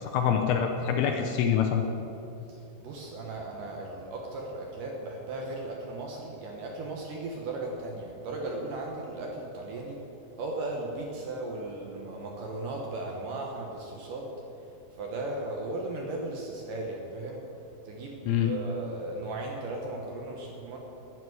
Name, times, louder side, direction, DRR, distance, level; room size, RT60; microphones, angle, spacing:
voice 1, 0.0-1.8 18.3-18.5, left 8 dB, 80° left, 3 dB, 2.3 m, -25 dB
voice 2, 2.5-10.0 10.4-14.3 14.9-17.5 17.8-20.8, right 2 dB, 65° right, 0 dB, 2.2 m, -36 dB
12.5 x 6.0 x 9.4 m, 2.8 s
omnidirectional pair, 4.9 m